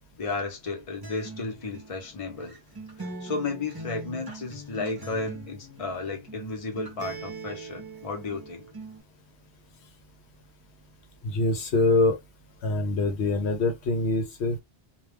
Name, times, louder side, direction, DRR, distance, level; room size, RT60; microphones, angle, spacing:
voice 1, 0.1-2.6 3.0-8.7, left 3 dB, 35° left, 0.8 m, -33 dB
Acoustic guitar, 1.0-9.0, right 2 dB, 25° right, 0.6 m, -42 dB
voice 2, 11.2-12.2 12.6-14.6, left 2 dB, 75° left, 0.9 m, -24 dB
2.2 x 2.2 x 3.3 m
omnidirectional pair, 1.2 m